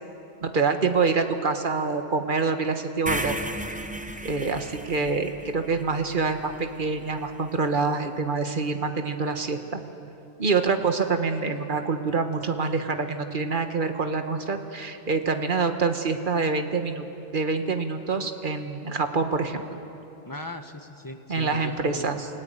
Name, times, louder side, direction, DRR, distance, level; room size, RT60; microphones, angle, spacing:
voice 1, 0.4-3.3 4.2-9.8 10.4-17.0 17.3-19.8 21.3-22.3, right 4 dB, 45° right, 7 dB, 1.6 m, -26 dB
sound 1, 3.1-7.2, right 1 dB, 5° right, 1.0 m, -35 dB
voice 2, 20.3-22.2, left 1 dB, 20° left, 6 dB, 1.4 m, -39 dB
28.5 x 18.0 x 9.0 m, 2.8 s
omnidirectional pair, 1.2 m